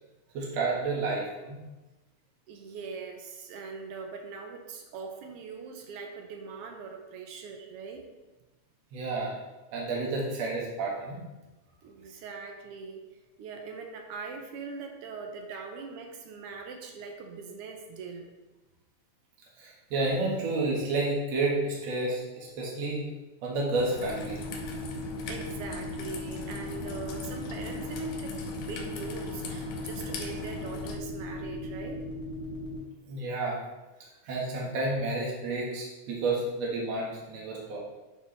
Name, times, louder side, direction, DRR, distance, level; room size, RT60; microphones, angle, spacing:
voice 1, 0.3-1.6 8.9-9.3 9.7-11.2 19.6-23.0 23.4-24.4 33.1-33.6 34.3-37.8, right 2 dB, 65° right, -3 dB, 2.6 m, -30 dB
voice 2, 2.5-8.1 11.8-13.1 13.4-18.3 25.3-32.1, right 4 dB, 80° right, 3 dB, 1.3 m, -41 dB
Raindrop / Trickle dribble, 23.7-31.0, left 4 dB, 75° left, 2.2 m, -41 dB
sound 1, 24.0-32.8, equal, 15° right, 2.4 m, -38 dB
9.9 x 4.5 x 3.3 m, 1.1 s
omnidirectional pair, 3.4 m